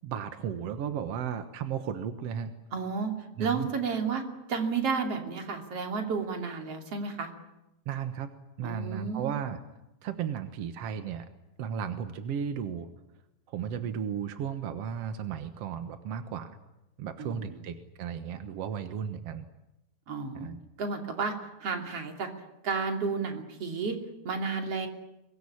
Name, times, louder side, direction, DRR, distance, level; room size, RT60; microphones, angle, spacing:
voice 1, 0.0-2.5 3.4-3.7 7.8-8.3 8.6-9.6 10.0-11.2 11.6-12.9 13.5-16.6 17.0-19.5 20.3-20.6, right 8 dB, 60° right, 9 dB, 1.6 m, -34 dB
voice 2, 2.7-3.1 3.4-4.2 4.5-7.3 8.6-9.3 17.2-17.6 20.1-20.5 20.8-21.3 21.6-22.3 22.6-24.0 24.3-24.9, right 5 dB, 40° right, 4 dB, 3.5 m, -32 dB
24.0 x 20.5 x 10.0 m, 0.91 s
omnidirectional pair, 4.4 m